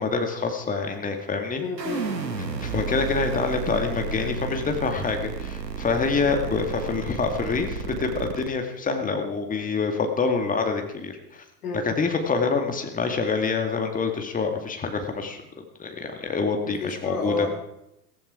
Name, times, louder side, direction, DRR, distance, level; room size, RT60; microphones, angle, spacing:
voice 1, 0.0-1.6 2.6-11.4 11.7-17.5, left 4 dB, 15° left, 4 dB, 2.2 m, -26 dB
voice 2, 1.6-2.1 11.6-11.8 16.6-17.5, left 3 dB, 65° left, 2 dB, 4.1 m, -30 dB
sound 1, 1.8-8.5, right 5 dB, 85° right, 1.4 m, -32 dB
15.5 x 15.5 x 4.9 m, 0.84 s
figure-of-eight pair, 85°, 49 cm